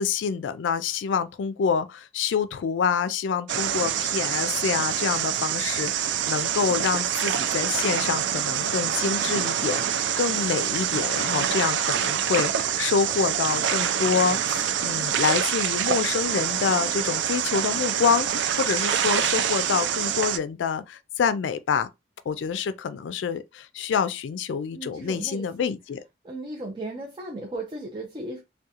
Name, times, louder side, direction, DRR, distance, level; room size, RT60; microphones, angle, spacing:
voice 1, 0.0-21.9 22.3-26.0, left 6 dB, 90° left, 0.3 m, -27 dB
sound 1, 3.5-20.4, right 9 dB, 85° right, 0.4 m, -26 dB
voice 2, 24.7-25.7 26.2-28.4, right 2 dB, 25° right, 0.5 m, -36 dB
3.6 x 2.2 x 2.8 m
head